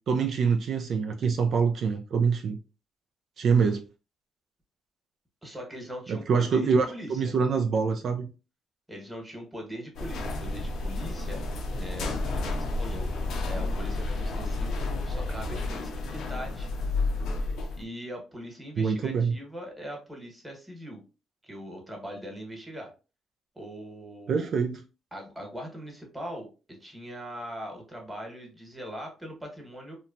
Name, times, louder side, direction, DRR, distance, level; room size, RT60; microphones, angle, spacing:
voice 1, 0.1-2.6 3.4-3.8 6.1-8.3 18.8-19.3 24.3-24.8, right 5 dB, 60° right, 0.3 m, -25 dB
voice 2, 5.4-7.3 8.9-11.4 11.8-16.7 17.8-21.0 21.4-22.9 23.5-24.5 25.1-30.0, equal, 5° right, 1.1 m, -41 dB
sound 1, 9.9-17.8, left 2 dB, 75° left, 0.5 m, -31 dB
2.8 x 2.2 x 2.5 m
cardioid pair, 90°, 0 cm